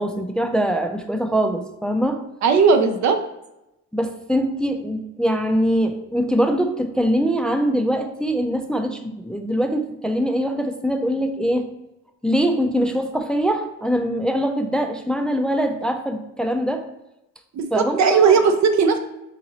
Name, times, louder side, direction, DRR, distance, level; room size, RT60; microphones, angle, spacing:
voice 1, 0.0-2.2 3.9-11.6 12.2-16.9 17.7-18.4, equal, 5° left, 6 dB, 0.4 m, -23 dB
voice 2, 2.4-3.2 17.5-19.0, right 5 dB, 65° right, 7 dB, 0.6 m, -17 dB
4.1 x 3.8 x 3.0 m, 0.91 s
cardioid pair, 90°, 30 cm